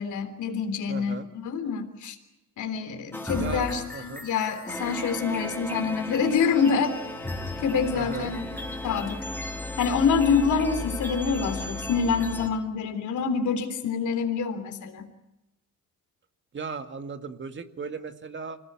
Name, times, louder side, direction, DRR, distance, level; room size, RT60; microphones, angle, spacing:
voice 1, 0.0-2.2 2.6-6.9 7.6-8.5 8.8-9.2 9.8-15.1, left 5 dB, 75° left, 7 dB, 3.5 m, -26 dB
voice 2, 0.9-1.3 3.3-4.3 7.9-8.3 16.5-18.6, right 5 dB, 40° right, 8 dB, 2.0 m, -36 dB
sound 1, 3.1-12.5, left 2 dB, 5° left, 2.8 m, -35 dB
26.0 x 18.0 x 9.5 m, 0.96 s
cardioid pair, 95°, 30 cm